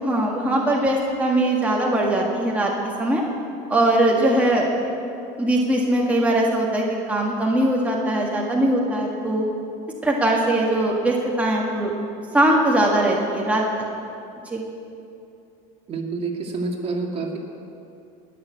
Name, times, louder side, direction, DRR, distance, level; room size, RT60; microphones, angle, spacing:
voice 1, 0.0-2.7 3.0-3.2 3.7-4.6 5.4-9.4 10.0-11.9 12.3-13.6 14.5-14.6, right 1 dB, 10° right, -2 dB, 1.8 m, -21 dB
voice 2, 15.9-17.4, right 3 dB, 35° right, 1 dB, 2.2 m, -28 dB
19.5 x 6.8 x 8.4 m, 2.6 s
supercardioid pair, 115°, 17 cm